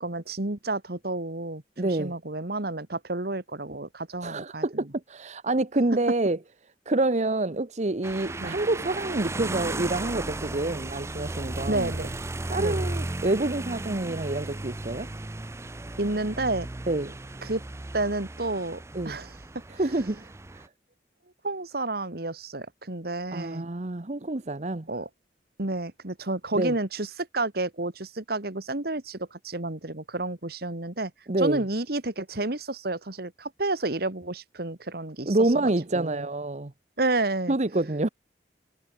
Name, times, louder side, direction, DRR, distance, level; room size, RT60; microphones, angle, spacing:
voice 1, 0.0-4.7 8.4-8.6 11.7-12.2 12.6-12.8 16.0-16.7 17.4-17.6 17.9-19.4 21.4-23.6 24.9-25.1 25.6-31.1 31.4-36.3 37.0-37.6, right 2 dB, 60° right, 2.0 m, -30 dB
voice 2, 1.8-2.1 4.2-6.4 6.9-11.9 12.5-15.1 16.9-17.1 18.9-19.2 19.8-20.6 23.3-24.9 26.6-26.7 31.3-31.6 35.3-36.7 37.5-38.1, right 2 dB, 40° right, 1.0 m, -27 dB
sound 1, 8.0-20.7, right 2 dB, 15° right, 0.5 m, -35 dB
head